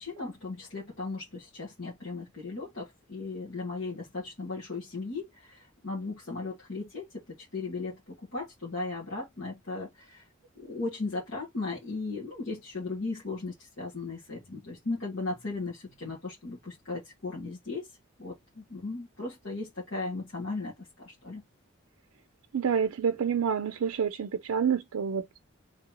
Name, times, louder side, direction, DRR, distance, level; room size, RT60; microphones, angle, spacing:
voice 1, 0.0-10.2 10.6-17.9 18.2-21.4, left 3 dB, 65° left, 1.7 m, -37 dB
voice 2, 22.5-25.4, right 7 dB, 90° right, 0.4 m, -28 dB
3.8 x 3.4 x 2.9 m
head